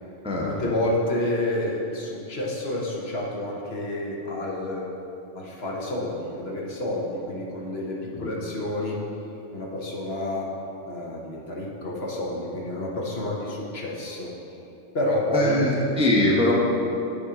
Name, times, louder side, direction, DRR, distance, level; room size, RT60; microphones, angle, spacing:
voice 1, 0.4-4.9 5.3-9.0 9.5-10.5 10.9-14.3 14.9-15.6, left 1 dB, 55° left, -3 dB, 1.2 m, -29 dB
voice 2, 15.3-16.5, left 1 dB, 5° right, -5 dB, 0.8 m, -22 dB
8.6 x 4.3 x 4.9 m, 2.8 s
omnidirectional pair, 1.3 m